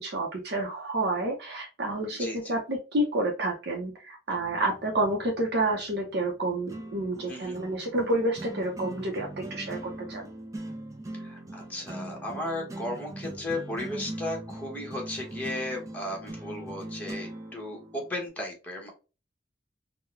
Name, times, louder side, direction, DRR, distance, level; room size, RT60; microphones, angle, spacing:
voice 1, 0.0-10.3, right 1 dB, 65° right, 0 dB, 0.7 m, -29 dB
voice 2, 2.1-2.5 7.3-7.6 11.2-18.9, left 1 dB, 10° left, -1 dB, 1.2 m, -35 dB
sound 1, 4.3-18.3, right 1 dB, 20° right, 0.6 m, -41 dB
3.8 x 2.1 x 2.7 m, 0.32 s
head